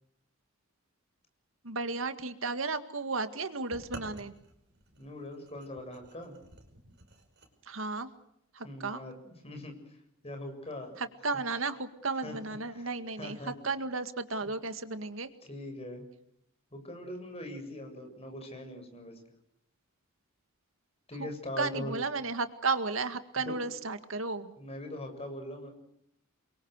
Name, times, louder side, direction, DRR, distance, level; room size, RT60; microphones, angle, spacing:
voice 1, 1.6-4.3 7.6-8.1 8.5-9.0 11.0-15.3 21.2-21.3 21.6-24.5, right 3 dB, 70° right, 10 dB, 2.0 m, -34 dB
sound 1, 3.7-7.5, right 2 dB, 55° right, 5.7 m, -50 dB
voice 2, 5.0-6.3 8.6-11.0 12.1-12.8 13.2-13.5 14.4-14.5 15.4-16.0 16.7-19.2 21.1-21.9 23.4-23.5 24.6-25.7, left 1 dB, 30° left, 4 dB, 7.6 m, -42 dB
29.0 x 23.5 x 6.6 m, 0.77 s
head